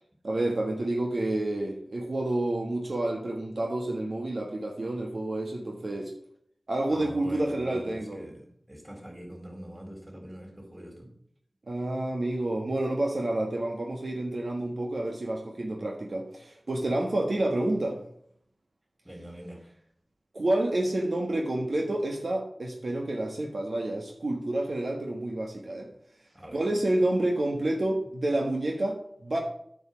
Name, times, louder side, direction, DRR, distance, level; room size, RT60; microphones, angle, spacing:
voice 1, 0.2-6.1 6.7-8.2 11.7-18.0 20.3-25.9 26.5-29.4, right 1 dB, 70° right, 1 dB, 1.5 m, -29 dB
voice 2, 6.9-11.1 19.0-19.8 26.3-26.7, equal, 15° right, 1 dB, 4.1 m, -43 dB
9.2 x 5.4 x 7.3 m, 0.67 s
wide cardioid pair, 45°, 0 cm